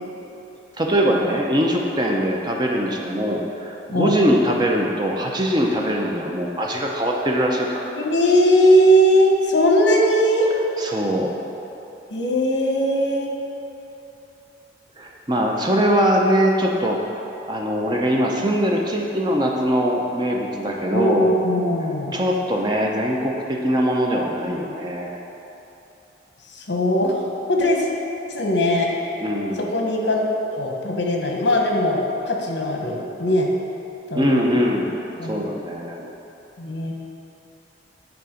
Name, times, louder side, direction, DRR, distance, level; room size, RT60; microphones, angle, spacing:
voice 1, 0.8-7.9 10.8-11.3 15.0-17.2 17.5-21.3 22.1-25.2 29.2-29.7 34.2-34.9 35.2-36.1, equal, 20° right, 0 dB, 0.6 m, -22 dB
voice 2, 3.9-4.2 7.9-10.5 12.1-13.3 20.9-22.2 26.5-27.2 27.5-27.9 28.3-28.9 29.7-30.2 30.5-33.5 34.1-34.6 35.2-35.4 36.6-36.9, equal, 70° left, 0 dB, 1.0 m, -19 dB
9.4 x 3.8 x 5.0 m, 3.0 s
head